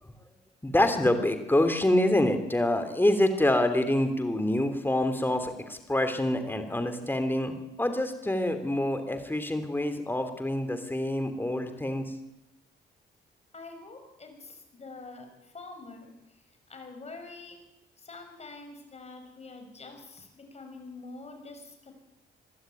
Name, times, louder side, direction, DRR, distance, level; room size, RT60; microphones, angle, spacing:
voice 1, 0.6-12.0, left 1 dB, 10° left, 8 dB, 3.3 m, -26 dB
voice 2, 13.5-17.6 18.0-21.9, left 3 dB, 35° left, 4 dB, 6.2 m, -46 dB
21.5 x 13.0 x 9.3 m, 0.90 s
cardioid pair, 90°, 20 cm